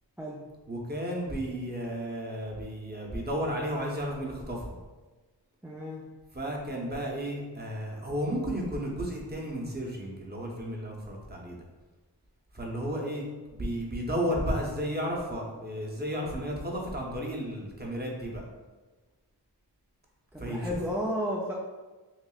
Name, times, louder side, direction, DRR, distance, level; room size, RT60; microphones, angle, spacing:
voice 1, 0.7-4.8 6.3-11.6 12.5-13.2 13.5-18.4 20.4-20.8, equal, 20° right, -1 dB, 0.8 m, -33 dB
voice 2, 5.6-6.1 20.3-21.5, equal, 5° right, -4 dB, 0.4 m, -32 dB
5.8 x 2.0 x 2.3 m, 1.2 s
cardioid pair, 55°, 44 cm